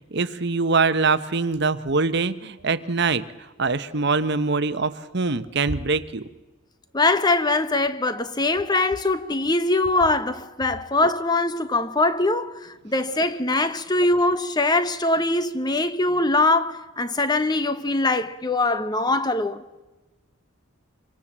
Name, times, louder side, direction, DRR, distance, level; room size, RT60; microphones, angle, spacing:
voice 1, 0.1-3.2 3.6-6.2, right 4 dB, 55° right, 1.1 m, -23 dB
voice 2, 6.9-19.6, left 2 dB, 20° left, 1.0 m, -22 dB
26.0 x 24.5 x 7.4 m
head